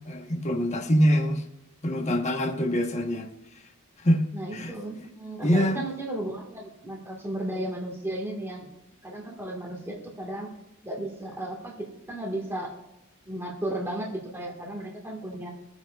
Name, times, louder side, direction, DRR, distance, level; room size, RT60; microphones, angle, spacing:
voice 1, 0.0-1.4 1.8-3.3 4.0-4.2 4.5-4.7 5.4-5.8, equal, 30° left, 1.3 m, -24 dB
voice 2, 4.3-8.7 9.0-10.5 10.8-12.7 13.3-15.5, right 1 dB, 10° right, 1.8 m, -34 dB
23.0 x 8.1 x 2.5 m
head